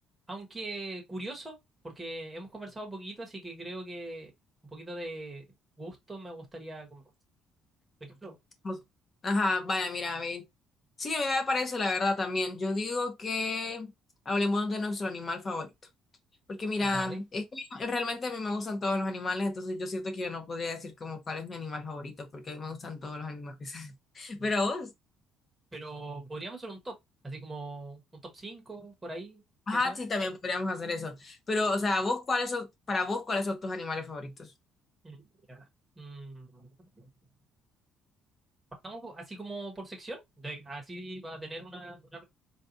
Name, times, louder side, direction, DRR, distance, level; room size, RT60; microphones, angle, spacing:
voice 1, 0.3-1.6 1.8-4.3 4.7-7.0 8.0-8.4 16.8-17.2 24.4-24.5 25.7-27.0 27.2-29.4 29.7-30.0 35.0-35.2 35.5-35.7 36.0-36.7 36.9-37.1 38.8-42.2, right 2 dB, 10° right, 1.0 m, -41 dB
voice 2, 9.2-10.4 11.0-13.9 14.3-15.7 16.5-24.9 29.7-34.5, left 2 dB, 25° left, 0.8 m, -31 dB
4.0 x 2.3 x 2.6 m
cardioid pair, 155°, 0 cm